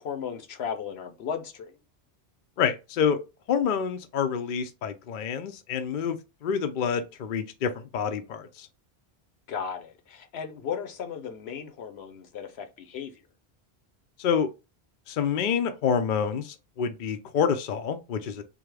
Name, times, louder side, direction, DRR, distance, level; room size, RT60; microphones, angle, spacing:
voice 1, 0.0-1.8 9.5-13.2, left 7 dB, 75° left, 1.0 m, -35 dB
voice 2, 2.6-3.2 3.5-8.7 14.2-14.5 15.1-18.4, left 7 dB, 60° left, 0.6 m, -27 dB
3.7 x 2.8 x 3.2 m
omnidirectional pair, 1.1 m